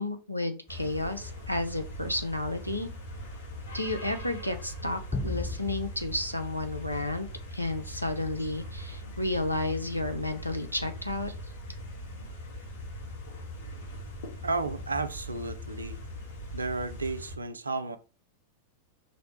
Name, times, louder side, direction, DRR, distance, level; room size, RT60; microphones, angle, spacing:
voice 1, 0.0-2.9 3.7-11.3, left 2 dB, 90° left, 0.4 m, -32 dB
sound 1, 0.7-17.3, left 3 dB, 60° left, 0.8 m, -50 dB
sound 2, 0.7-17.4, equal, 30° right, 0.8 m, -41 dB
sound 3, 5.1-7.7, left 3 dB, 15° left, 0.9 m, -37 dB
voice 2, 14.4-16.1 16.5-18.0, right 3 dB, 75° right, 0.3 m, -33 dB
3.0 x 2.0 x 4.1 m
figure-of-eight pair, 90°, 0 cm